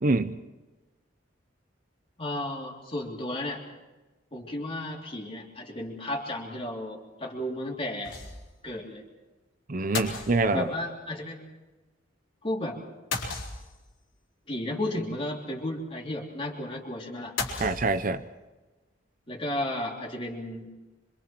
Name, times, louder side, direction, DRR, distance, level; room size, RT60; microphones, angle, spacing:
voice 1, 0.0-0.4 9.7-10.7 17.6-18.2, right 3 dB, 45° right, 10 dB, 0.7 m, -25 dB
voice 2, 2.2-3.6 4.3-8.2 8.6-9.0 10.5-11.6 12.4-12.8 14.5-17.3 19.3-20.7, left 1 dB, 30° left, -1 dB, 3.4 m, -33 dB
sound 1, 8.0-8.6 8.9-9.0 9.9-10.8 13.1-14.0 17.4-18.3, left 4 dB, 85° left, 4.2 m, -34 dB
26.0 x 26.0 x 4.6 m, 1.2 s
head